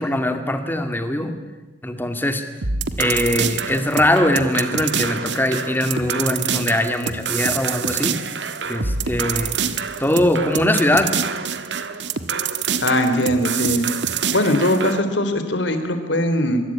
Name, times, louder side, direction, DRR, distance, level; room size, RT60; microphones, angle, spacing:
voice 1, 0.0-1.4 1.8-2.4 3.0-8.2 8.7-9.5 10.0-11.2, left 1 dB, 10° left, 7 dB, 2.3 m, -21 dB
sound 1, 2.6-15.0, right 6 dB, 70° right, 1.5 m, -26 dB
voice 2, 12.8-13.8 14.3-16.6, left 1 dB, 80° left, 9 dB, 3.6 m, -20 dB
25.0 x 23.0 x 8.8 m, 1.1 s
head